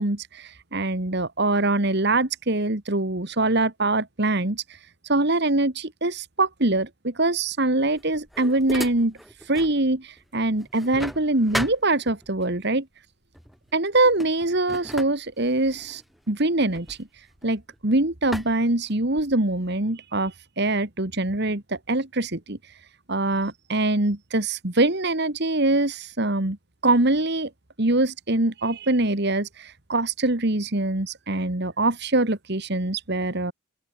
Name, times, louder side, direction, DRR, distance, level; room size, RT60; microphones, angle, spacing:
voice 1, 0.0-4.6 5.1-9.2 9.5-12.9 13.7-16.0 16.3-17.0 17.4-22.6 23.1-26.6 26.8-27.5 27.8-33.5, right 2 dB, 50° right, 1.9 m, -23 dB
sound 1, 7.8-9.8 10.2-12.5 13.3-13.6 13.9-17.8 18.3-19.5, equal, ahead, 3.8 m, -37 dB
open air
head